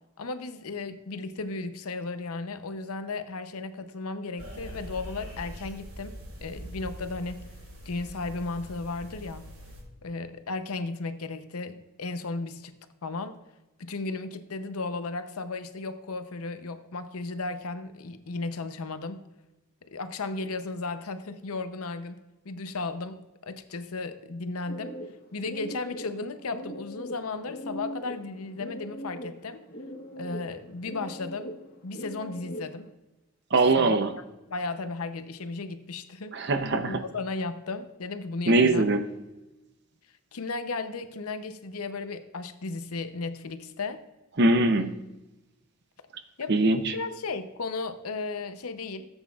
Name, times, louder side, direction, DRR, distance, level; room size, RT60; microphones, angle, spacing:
voice 1, 0.2-7.5 7.8-9.5 10.0-12.7 13.0-13.4 13.8-19.2 19.9-22.2 22.4-24.9 25.3-29.6 30.2-31.5 31.8-32.9 33.7-34.0 34.5-36.5 36.8-38.9 40.3-44.0 46.4-46.6 46.9-49.1, left 3 dB, 80° left, 10 dB, 0.7 m, -35 dB
sound 1, 4.4-9.8, equal, 75° right, 2.9 m, -43 dB
sound 2, 24.7-32.9, equal, 40° left, 0.9 m, -41 dB
voice 2, 33.5-34.1 36.3-37.0 38.5-39.0 44.4-44.9 46.5-46.9, right 2 dB, 50° right, 9 dB, 0.7 m, -22 dB
14.0 x 8.0 x 2.4 m, 0.99 s
head